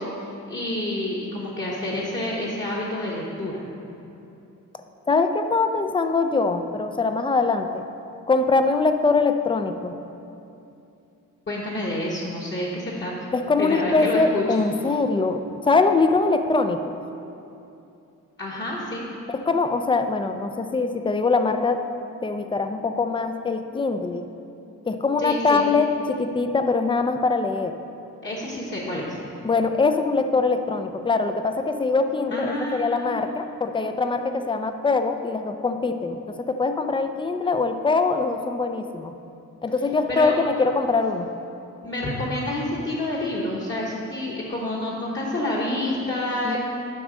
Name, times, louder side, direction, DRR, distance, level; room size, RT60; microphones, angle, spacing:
voice 1, 0.0-3.6 11.5-13.3 13.6-14.4 18.4-19.1 25.2-25.6 28.2-29.2 32.3-33.4 40.1-40.3 41.8-46.6, left 1 dB, 35° left, -5 dB, 1.1 m, -28 dB
voice 2, 5.1-7.9 8.3-9.9 13.3-17.0 19.3-21.8 22.2-24.3 24.8-27.8 29.4-39.2 39.6-41.3 46.4-46.6, left 3 dB, 15° left, 8 dB, 0.3 m, -23 dB
9.6 x 4.0 x 6.3 m, 2.7 s
wide cardioid pair, 135°, 32 cm